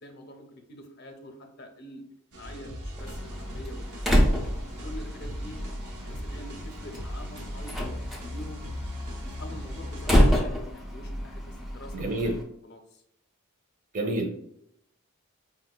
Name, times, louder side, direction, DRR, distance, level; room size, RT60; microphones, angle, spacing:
voice 1, 0.0-2.0 2.3-4.3 4.8-5.6 6.0-7.8 8.2-8.7 9.2-13.0, left 1 dB, 50° left, 4 dB, 0.6 m, -45 dB
sound 1, 2.3-10.4, equal, 75° right, 0.8 m, -39 dB
Slam, 3.0-12.4, equal, ahead, 0.4 m, -28 dB
voice 2, 11.9-12.4 13.9-14.3, right 1 dB, 35° right, 2 dB, 0.7 m, -28 dB
5.2 x 2.2 x 2.2 m, 0.73 s
head